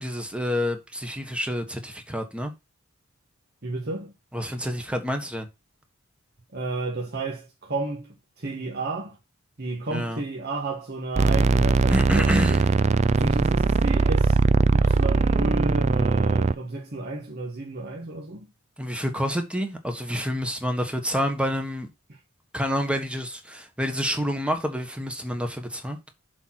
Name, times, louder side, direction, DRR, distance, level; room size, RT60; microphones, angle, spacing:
voice 1, 0.0-2.5 4.3-5.5 9.9-10.2 11.9-12.6 18.8-21.9 22.5-26.1, equal, 5° right, 1.3 m, -28 dB
voice 2, 3.6-4.1 6.5-9.2 9.6-12.7 13.2-14.4 14.7-18.5 22.1-22.2, right 2 dB, 50° right, 1.5 m, -32 dB
sound 1, 11.2-16.5, right 3 dB, 35° right, 0.4 m, -20 dB
7.0 x 4.4 x 5.9 m
head